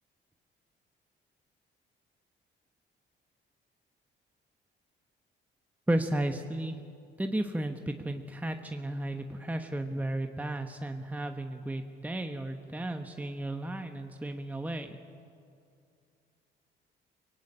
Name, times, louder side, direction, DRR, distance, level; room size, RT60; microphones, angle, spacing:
voice 1, 5.9-6.8 7.2-15.0, right 1 dB, 10° right, 5 dB, 1.2 m, -33 dB
24.0 x 19.0 x 8.8 m, 2.4 s
cardioid pair, 90°, 20 cm